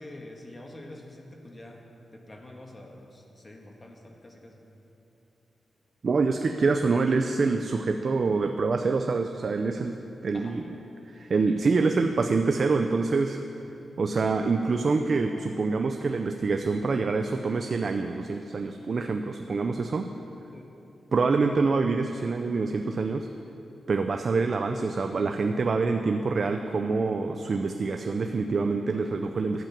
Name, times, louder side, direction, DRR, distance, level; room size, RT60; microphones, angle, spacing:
voice 1, 0.0-4.6 10.3-10.6 11.5-11.8 20.5-20.7, left 1 dB, 30° left, 1 dB, 1.5 m, -46 dB
voice 2, 6.0-10.6 11.1-13.4 14.0-20.1 21.1-23.3 23.9-29.6, right 4 dB, 50° right, 5 dB, 0.5 m, -26 dB
12.0 x 9.0 x 5.8 m, 3.0 s
cardioid pair, 95°, 0 cm